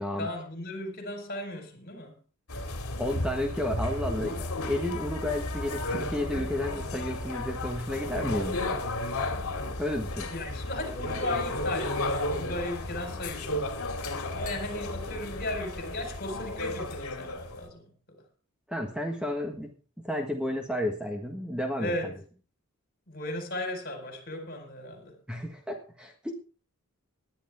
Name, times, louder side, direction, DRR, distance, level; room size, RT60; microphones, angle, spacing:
voice 1, 0.2-2.1 10.3-13.6 14.3-17.9 21.8-22.1 23.1-25.2, left 1 dB, 45° left, 4.5 m, -36 dB
sound 1, 2.5-17.7, left 2 dB, 70° left, 2.4 m, -33 dB
voice 2, 3.0-8.6 9.8-10.3 18.7-19.7 20.0-22.1 25.3-26.3, left 1 dB, 5° right, 1.5 m, -32 dB
19.5 x 10.0 x 3.6 m
head